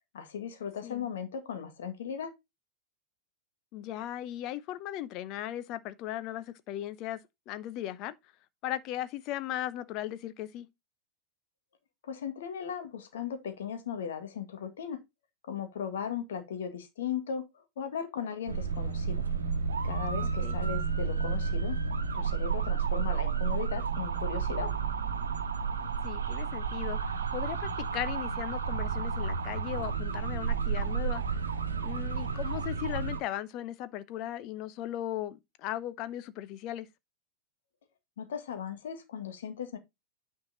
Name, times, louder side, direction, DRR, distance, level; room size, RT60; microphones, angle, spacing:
voice 1, 0.1-2.3 12.0-15.0 15.5-19.3 19.8-21.8 22.1-24.8 38.2-39.8, left 7 dB, 60° left, 1.9 m, -37 dB
voice 2, 3.7-7.2 7.5-8.1 8.6-10.7 20.2-20.6 25.8-31.2 31.8-36.9, left 13 dB, 40° left, 0.8 m, -37 dB
sound 1, 18.5-33.2, right 6 dB, 70° right, 1.1 m, -31 dB
9.7 x 4.7 x 4.1 m
figure-of-eight pair, 90°, 0 cm